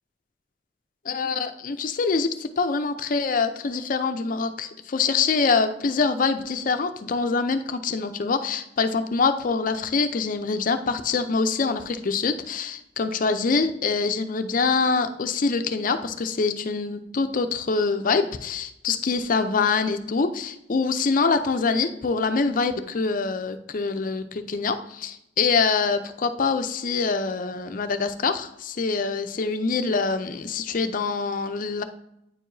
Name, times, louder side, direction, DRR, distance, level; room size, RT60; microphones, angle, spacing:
voice 1, 1.1-31.8, left 4 dB, 50° left, 9 dB, 0.5 m, -25 dB
9.0 x 4.7 x 2.6 m, 0.82 s
head